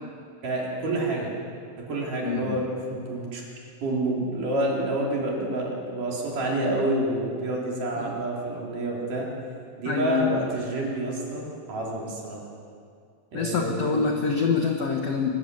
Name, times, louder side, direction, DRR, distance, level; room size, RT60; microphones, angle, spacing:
voice 1, 0.4-1.3 1.8-3.4 3.8-9.3 9.8-12.4 13.3-14.0, right 1 dB, 50° right, -3 dB, 5.3 m, -28 dB
voice 2, 2.2-2.6 8.0-8.1 9.9-10.4 13.3-15.3, left 5 dB, 60° left, 2 dB, 1.8 m, -26 dB
24.0 x 20.0 x 7.9 m, 2.3 s
omnidirectional pair, 4.8 m